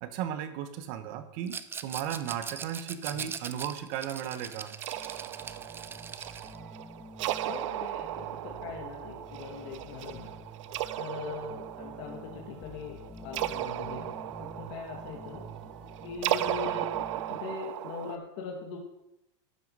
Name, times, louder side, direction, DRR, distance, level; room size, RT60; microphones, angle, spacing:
voice 1, 0.0-4.8, right 10 dB, 50° right, 11 dB, 0.9 m, -35 dB
Rattle, 1.5-6.6, right 6 dB, 15° right, 0.4 m, -41 dB
sound 1, 4.8-18.2, right 14 dB, 80° right, 0.5 m, -36 dB
sound 2, 4.9-17.4, equal, 5° left, 1.5 m, -48 dB
voice 2, 7.5-10.3 11.0-15.4 16.0-16.9 17.4-18.8, left 6 dB, 60° left, 0 dB, 1.9 m, -41 dB
12.0 x 6.4 x 5.4 m, 0.87 s
supercardioid pair, 150°, 16 cm